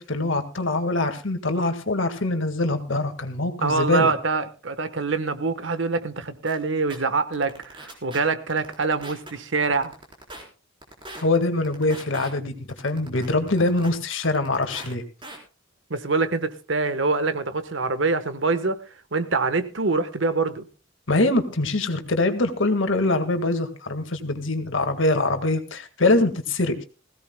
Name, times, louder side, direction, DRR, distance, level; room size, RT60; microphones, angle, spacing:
voice 1, 0.0-4.1 11.2-15.0 21.1-26.8, left 2 dB, 80° left, 1.8 m, -23 dB
voice 2, 3.6-9.9 15.9-18.8 19.1-20.6, right 3 dB, 70° right, 1.2 m, -25 dB
sound 1, 6.5-6.6 6.9-7.0 7.3-8.2 8.5-9.3 9.6-10.4 10.8-11.2 11.6-12.3 12.7-13.9 14.2-14.9 15.2-15.4, right 2 dB, 25° right, 4.1 m, -40 dB
20.0 x 16.0 x 2.2 m
head